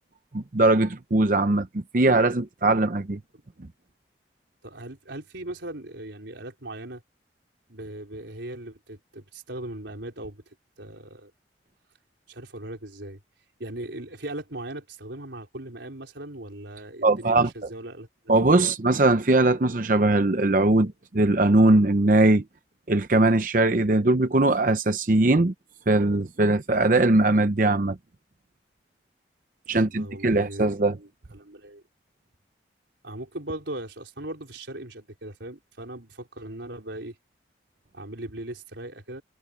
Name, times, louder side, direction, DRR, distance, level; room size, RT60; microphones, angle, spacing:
voice 1, 0.3-1.7 1.9-3.2 17.0-17.5 18.3-22.4 22.9-25.5 25.9-28.0 29.7-31.0, right 2 dB, 45° right, 0.7 m, -20 dB
voice 2, 4.6-7.0 7.7-11.3 12.3-13.2 13.6-18.7 25.1-25.5 29.7-31.8 33.0-37.2 37.9-39.2, right 1 dB, 80° right, 4.3 m, -39 dB
head